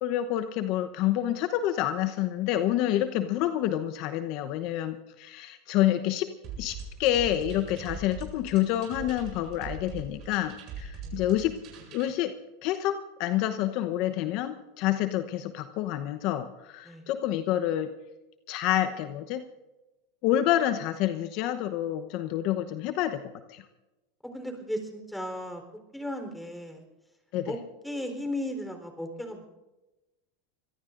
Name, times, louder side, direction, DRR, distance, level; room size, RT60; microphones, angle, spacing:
voice 1, 0.0-6.3 6.6-11.5 11.9-12.3 12.6-17.9 18.5-19.4 20.2-23.2 23.5-23.6 27.3-27.6, left 12 dB, 55° left, 10 dB, 0.9 m, -28 dB
sound 1, 6.4-12.1, right 5 dB, 50° right, 7.6 m, -41 dB
voice 2, 24.2-25.6 25.9-26.8 27.5-27.6 27.8-29.4, left 1 dB, 5° left, 5 dB, 4.0 m, -35 dB
25.5 x 19.0 x 2.6 m, 1.0 s
hypercardioid pair, 110°, 0 cm